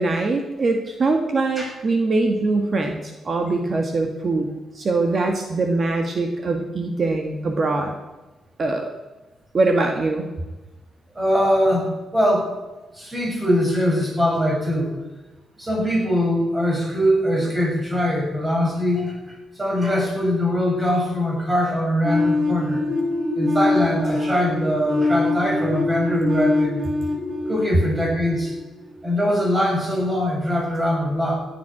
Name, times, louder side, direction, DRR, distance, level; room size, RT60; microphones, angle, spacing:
voice 1, 0.0-7.9 8.6-8.9 9.5-10.2, right 3 dB, 40° right, 4 dB, 1.8 m, -22 dB
voice 2, 11.1-12.5 12.9-14.9 15.6-22.8 23.3-26.9 27.5-28.5 29.0-31.4, equal, 15° right, -2 dB, 6.6 m, -22 dB
sound 1, 22.0-28.8, left 2 dB, 60° right, 3.8 m, -24 dB
16.5 x 9.8 x 6.0 m, 1.1 s
cardioid pair, 115°, 0 cm